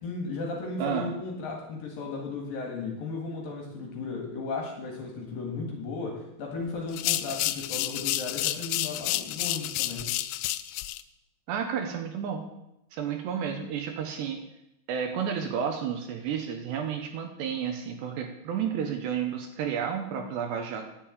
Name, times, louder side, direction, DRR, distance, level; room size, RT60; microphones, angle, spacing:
voice 1, 0.0-10.1, left 3 dB, 60° left, 0 dB, 2.9 m, -35 dB
voice 2, 0.8-1.2 11.5-12.5 12.9-14.4 14.9-20.8, right 7 dB, 75° right, 4 dB, 2.9 m, -31 dB
sound 1, 6.9-11.0, left 15 dB, 85° left, 3.0 m, -30 dB
10.5 x 6.9 x 8.9 m, 0.85 s
omnidirectional pair, 5.5 m